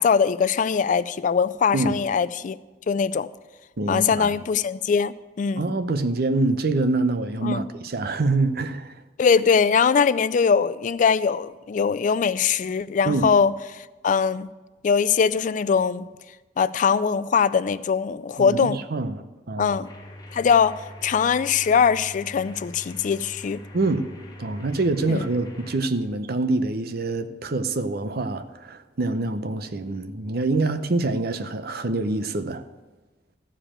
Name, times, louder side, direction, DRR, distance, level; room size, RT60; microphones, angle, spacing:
voice 1, 0.0-2.6 2.9-3.3 3.9-5.8 7.4-7.6 9.2-14.5 14.8-16.1 16.6-18.8 19.6-19.9 20.3-23.6 25.1-25.3, left 6 dB, 45° left, 0.3 m, -22 dB
voice 2, 3.8-4.3 5.6-9.0 13.0-13.3 18.4-19.8 23.7-24.1 24.4-32.6, right 2 dB, 60° right, 0.7 m, -25 dB
sound 1, 19.8-25.8, left 1 dB, 20° left, 1.4 m, -42 dB
14.0 x 5.0 x 8.7 m
head